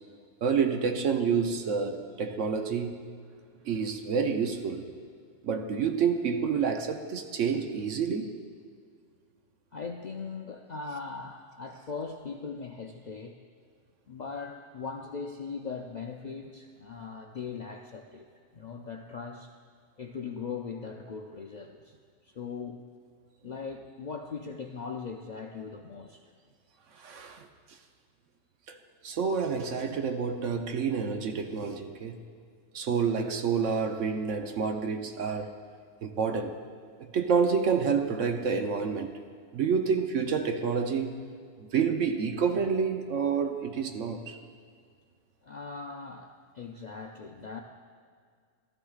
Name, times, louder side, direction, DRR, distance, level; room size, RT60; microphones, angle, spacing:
voice 1, 0.4-2.9 3.7-4.9 5.4-8.4 27.0-27.5 28.7-28.8 29.0-32.2 32.7-35.5 36.0-36.6 37.0-39.1 39.5-41.1 41.7-44.4, right 6 dB, 75° right, 6 dB, 1.1 m, -28 dB
voice 2, 9.7-13.4 14.1-18.3 18.5-19.5 20.0-22.0 22.2-22.8 23.4-26.3 45.4-47.6, left 5 dB, 55° left, 2 dB, 0.5 m, -39 dB
16.5 x 13.0 x 2.4 m, 2.1 s
omnidirectional pair, 1.3 m